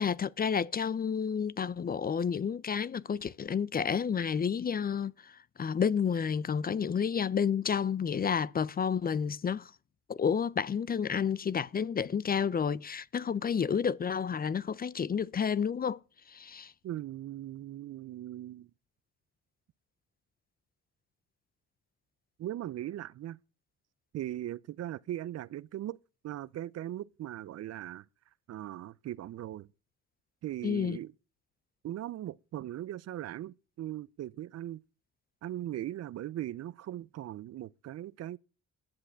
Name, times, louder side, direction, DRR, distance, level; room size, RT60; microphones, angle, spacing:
voice 1, 0.0-9.7 10.1-16.0 16.3-16.7 30.6-31.0, left 7 dB, 30° left, 0.5 m, -30 dB
voice 2, 16.8-18.7 22.4-23.4 24.1-26.0 26.2-28.1 28.5-29.7 30.4-31.1 31.8-34.8 35.4-38.4, right 13 dB, 55° right, 0.5 m, -39 dB
10.5 x 7.6 x 7.4 m
cardioid pair, 90°, 30 cm